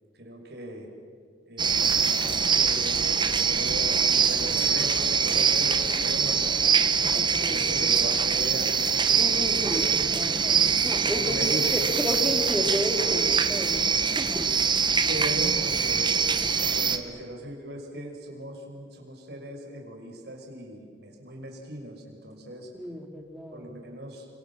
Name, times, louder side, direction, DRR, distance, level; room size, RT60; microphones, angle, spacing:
voice 1, 0.1-0.9 1.5-10.0 10.9-11.9 15.1-16.2 16.6-22.7 23.5-24.3, right 1 dB, 65° right, 2 dB, 6.1 m, -39 dB
sound 1, 1.6-17.0, right 6 dB, 25° right, 1.4 m, -24 dB
voice 2, 7.1-7.9 9.2-14.5 22.7-23.7, left 1 dB, 5° right, 3 dB, 2.9 m, -33 dB
29.5 x 26.0 x 7.5 m, 2.1 s
head